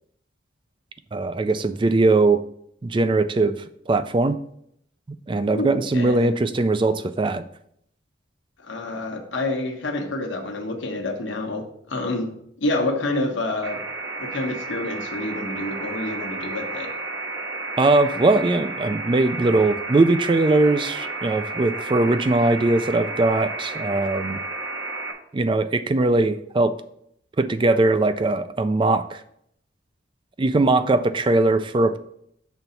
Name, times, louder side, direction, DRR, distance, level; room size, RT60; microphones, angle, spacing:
voice 1, 1.1-2.4 2.8-3.6 3.9-4.4 5.3-7.4 17.8-24.4 25.3-26.7 27.4-29.2 30.4-32.0, right 2 dB, 25° right, 12 dB, 0.3 m, -20 dB
voice 2, 5.5-6.3 8.6-12.3 12.6-13.8 14.2-16.9, left 2 dB, 75° left, 4 dB, 1.1 m, -28 dB
sound 1, 13.6-25.1, right 3 dB, 70° right, 1.1 m, -32 dB
6.3 x 3.9 x 5.6 m, 0.71 s
head